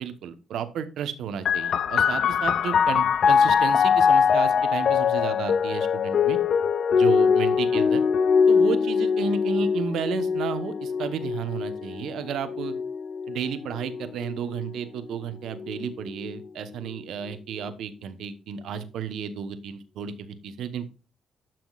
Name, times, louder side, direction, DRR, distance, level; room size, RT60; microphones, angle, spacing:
voice 1, 0.0-6.4 6.9-8.0 8.5-12.7 13.3-20.9, right 7 dB, 75° right, 10 dB, 1.1 m, -32 dB
sound 1, 1.5-14.7 15.6-16.3, left 6 dB, 60° left, 0.5 m, -23 dB
12.0 x 6.1 x 2.4 m, 0.32 s
cardioid pair, 90°, 0 cm